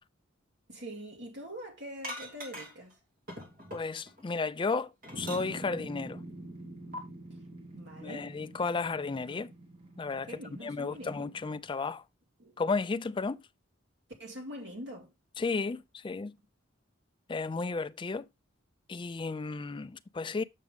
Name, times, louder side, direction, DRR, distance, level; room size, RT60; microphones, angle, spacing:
voice 1, 0.7-3.0 7.7-8.3 10.3-11.3 12.4-12.5 14.2-15.1, equal, 60° right, 2.4 m, -44 dB
sound 1, 2.0-2.9 3.3-4.2 4.6-5.8 6.9-7.0, equal, 45° right, 2.6 m, -42 dB
voice 2, 3.7-6.2 8.0-9.5 10.0-12.0 12.6-13.4 15.4-16.4 17.3-18.3 18.9-20.4, left 4 dB, 25° left, 0.4 m, -33 dB
sound 2, 5.1-11.6, right 1 dB, 25° right, 1.6 m, -46 dB
7.6 x 5.9 x 3.4 m
head